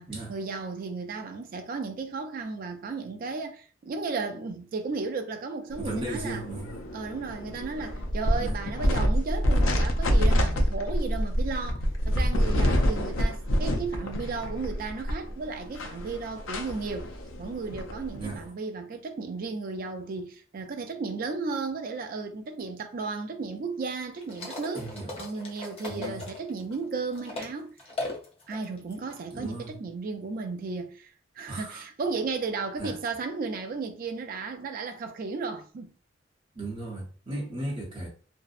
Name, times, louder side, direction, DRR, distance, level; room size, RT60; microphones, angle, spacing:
voice 1, 0.0-6.5 6.9-17.1 17.4-24.9 25.2-27.8 28.5-31.1 31.4-35.9, right 4 dB, 45° right, 0.3 m, -34 dB
sound 1, 5.7-18.5, equal, 85° left, 0.5 m, -27 dB
voice 2, 5.8-6.8 8.4-8.6 18.1-18.4 24.7-25.2 25.9-26.2 29.3-29.8 31.5-31.8 32.8-32.9 36.5-38.1, right 2 dB, 25° right, 0.8 m, -35 dB
sound 2, 24.2-27.5 27.8-29.2, left 2 dB, 30° left, 0.5 m, -38 dB
2.6 x 2.0 x 2.4 m
head